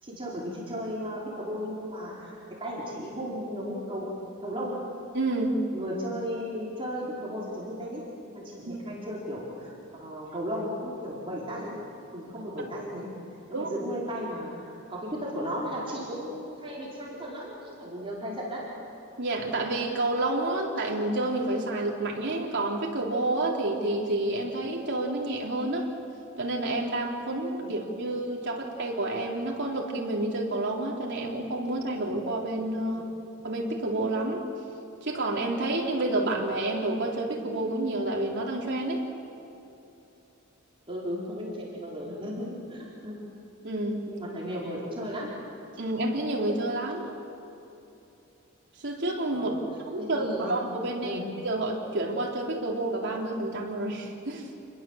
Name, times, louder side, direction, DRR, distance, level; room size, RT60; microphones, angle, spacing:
voice 1, 0.0-4.1 4.4-4.8 5.7-11.7 12.1-13.1 13.5-18.6 27.6-27.7 32.9-33.1 40.9-43.2 44.1-45.3 49.3-49.6 50.0-50.6 51.0-51.2, equal, 25° right, -6 dB, 4.6 m, -35 dB
voice 2, 5.1-5.6 8.7-8.9 13.5-13.7 19.2-25.9 26.4-33.1 33.4-34.4 35.0-39.0 43.6-44.1 45.8-47.1 48.8-49.5 49.9-54.5, right 2 dB, 55° right, -1 dB, 3.8 m, -29 dB
28.5 x 21.0 x 7.4 m, 2.8 s
head